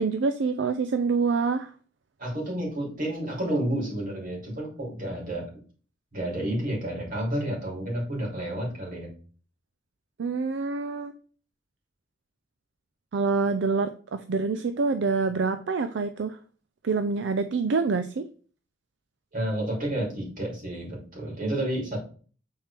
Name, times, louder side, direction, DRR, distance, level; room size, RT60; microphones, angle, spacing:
voice 1, 0.0-1.7 10.2-11.1 13.1-16.4 16.8-18.3, right 4 dB, 75° right, 0.4 m, -26 dB
voice 2, 2.2-5.5 6.1-9.1 19.3-22.0, right 1 dB, 50° right, 3.3 m, -30 dB
7.3 x 4.4 x 3.4 m
head